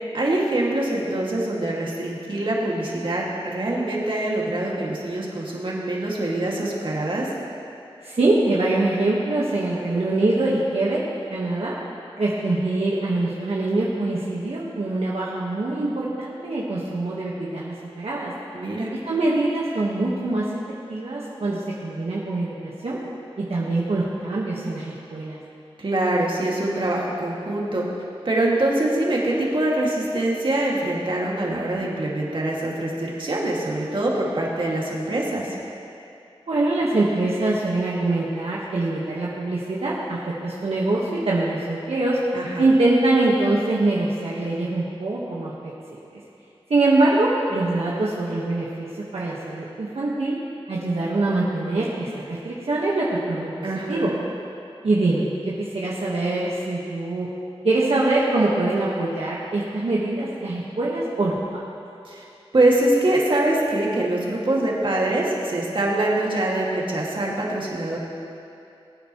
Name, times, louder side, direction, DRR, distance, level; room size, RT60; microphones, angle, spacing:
voice 1, 0.1-7.3 18.5-18.9 25.8-27.9 28.2-35.5 42.3-42.6 53.6-54.1 62.1-62.2 62.5-68.0, right 1 dB, 55° right, -4 dB, 2.1 m, -24 dB
voice 2, 8.0-11.0 11.3-11.7 12.2-18.3 19.0-20.4 20.9-23.0 23.4-25.4 36.5-42.2 42.6-46.2 46.7-50.4 50.7-54.1 54.8-57.3 57.6-61.6, right 2 dB, 80° right, -6 dB, 1.3 m, -24 dB
20.5 x 9.2 x 3.1 m, 2.6 s
wide cardioid pair, 75°, 10 cm